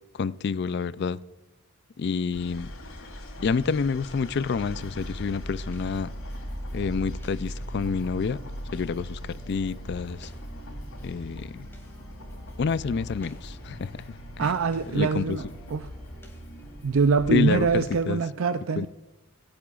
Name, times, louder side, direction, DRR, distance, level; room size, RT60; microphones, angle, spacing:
voice 1, 0.1-1.2 2.0-2.7 3.4-6.1 6.7-8.4 8.7-10.3 11.0-11.7 12.6-14.0 14.4-14.5 14.9-15.4 17.3-17.7 18.1-18.2 18.8-18.9, left 5 dB, 50° left, 18 dB, 0.3 m, -28 dB
sound 1, 2.3-18.0, equal, 80° left, 3.4 m, -40 dB
sound 2, 4.7-18.1, left 1 dB, 10° left, 2.3 m, -45 dB
voice 2, 14.4-15.4 15.7-15.9 16.8-18.9, right 4 dB, 65° right, 10 dB, 0.5 m, -24 dB
26.0 x 8.7 x 2.4 m, 1.0 s
head